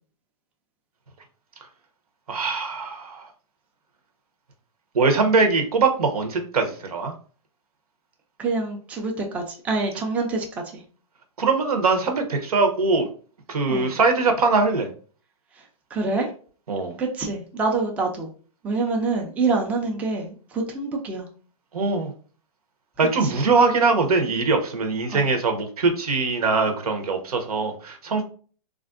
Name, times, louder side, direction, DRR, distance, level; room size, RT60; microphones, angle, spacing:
voice 1, 2.3-3.3 4.9-7.1 11.4-13.1 13.5-14.9 16.7-17.0 21.7-22.1 23.0-28.2, right 4 dB, 90° right, 5 dB, 0.9 m, -22 dB
voice 2, 8.4-10.5 13.7-14.0 15.9-16.3 17.0-18.3 18.6-21.3 23.2-23.3 25.1-25.3, right 3 dB, 10° right, 1 dB, 0.4 m, -26 dB
3.3 x 2.5 x 2.4 m, 0.42 s
hypercardioid pair, 145°, 19 cm